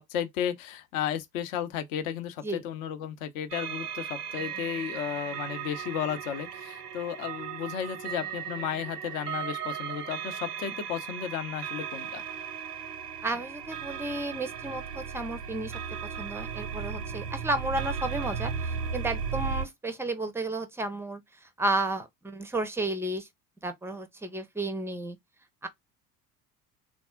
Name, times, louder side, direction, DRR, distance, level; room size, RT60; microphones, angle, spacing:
voice 1, 0.0-12.2, left 9 dB, 55° left, 0.8 m, -34 dB
sound 1, 3.5-19.7, right 7 dB, 80° right, 0.6 m, -36 dB
voice 2, 13.2-15.7 16.2-23.3 23.6-25.2 25.6-25.7, right 2 dB, 5° right, 0.4 m, -32 dB
3.5 x 2.0 x 3.6 m
figure-of-eight pair, 65°, 47 cm